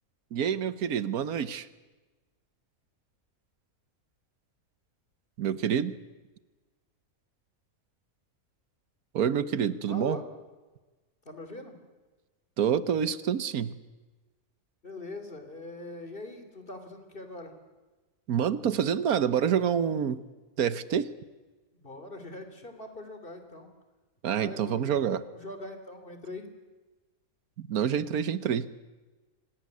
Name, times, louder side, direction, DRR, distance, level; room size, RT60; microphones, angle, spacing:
voice 1, 0.3-1.7 5.4-6.0 9.1-10.2 12.6-13.7 18.3-20.2 20.6-21.1 24.2-25.2 27.6-28.7, right 8 dB, 90° right, 15 dB, 1.5 m, -27 dB
voice 2, 9.9-10.2 11.2-11.8 14.8-17.5 21.7-23.7 24.3-25.0 25.3-26.5, left 2 dB, 40° left, 7 dB, 3.1 m, -42 dB
25.5 x 18.5 x 9.6 m, 1.2 s
omnidirectional pair, 1.5 m